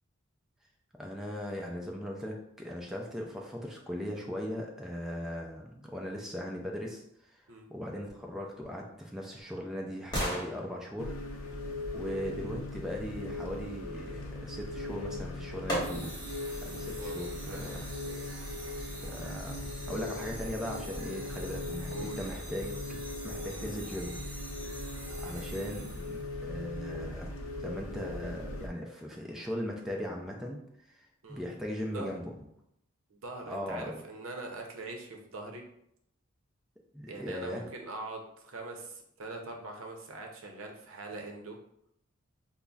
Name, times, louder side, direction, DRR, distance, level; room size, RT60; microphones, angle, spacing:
voice 1, 1.0-7.4 7.7-11.1 11.9-16.1 16.6-17.8 18.9-22.7 23.2-24.2 24.5-24.8 25.1-27.3 27.6-30.6 30.9-32.2 33.4-34.0 36.9-37.7, equal, ahead, -1 dB, 0.4 m, -39 dB
sound 1, 8.8-12.7 14.8-14.9 15.7-16.4 16.9-17.0, equal, 20° left, 1.3 m, -38 dB
sound 2, 11.0-28.7, left 2 dB, 70° left, 0.5 m, -39 dB
sound 3, 15.8-26.3, right 2 dB, 25° right, 0.9 m, -47 dB
voice 2, 17.0-17.7 18.0-18.2 21.9-22.2 31.2-31.4 31.9-32.2 33.1-35.6 37.1-41.6, right 3 dB, 75° right, 2 dB, 0.6 m, -42 dB
5.3 x 2.1 x 2.3 m, 0.74 s
head